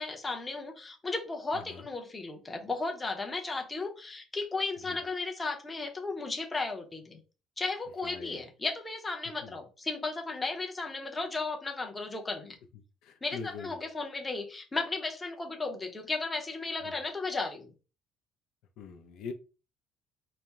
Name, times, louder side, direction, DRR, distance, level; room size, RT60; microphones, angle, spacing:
voice 1, 0.0-7.2 7.6-12.6 13.2-17.7, left 3 dB, 15° left, 0.7 m, -35 dB
voice 2, 1.5-1.9 4.8-5.0 8.0-8.4 9.4-9.6 13.0-13.8 16.8-17.0 18.8-19.3, left 5 dB, 75° left, 0.5 m, -43 dB
4.2 x 2.0 x 3.4 m
cardioid pair, 145°, 0 cm